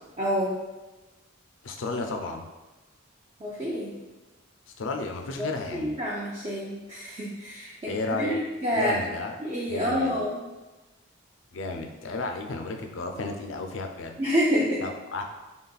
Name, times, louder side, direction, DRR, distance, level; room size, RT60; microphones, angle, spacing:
voice 1, 0.2-0.6 3.4-3.9 5.4-9.0 9.4-10.4 14.2-14.8, equal, 30° right, -5 dB, 0.4 m, -28 dB
voice 2, 1.6-2.4 4.8-6.0 7.9-8.4 8.7-9.4 9.7-10.1 11.5-14.2 14.8-15.2, left 3 dB, 60° left, 4 dB, 0.4 m, -33 dB
3.9 x 3.6 x 2.3 m, 1.1 s
head